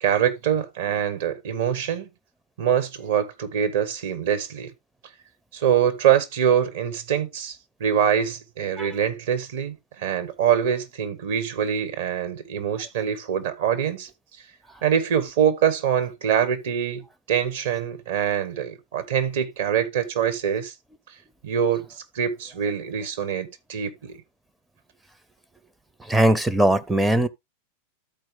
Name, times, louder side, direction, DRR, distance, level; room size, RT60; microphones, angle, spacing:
voice 1, 0.0-2.1 2.6-4.7 5.5-14.1 14.8-20.7 21.4-24.2, right 9 dB, 55° right, 1.3 m, -24 dB
voice 2, 26.1-27.3, right 1 dB, 5° right, 0.6 m, -20 dB
13.0 x 4.5 x 3.2 m
figure-of-eight pair, 90°, 0 cm